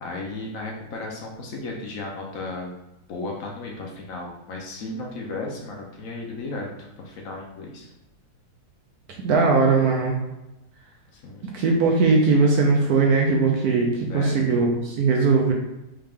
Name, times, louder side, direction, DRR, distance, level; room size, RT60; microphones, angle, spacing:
voice 1, 0.0-2.8 3.1-7.9 11.1-11.5 14.1-14.4, left 2 dB, 65° left, 0 dB, 0.8 m, -34 dB
voice 2, 9.2-10.1 11.5-15.5, right 4 dB, 70° right, 0 dB, 0.9 m, -19 dB
3.6 x 3.2 x 3.5 m, 0.93 s
omnidirectional pair, 2.0 m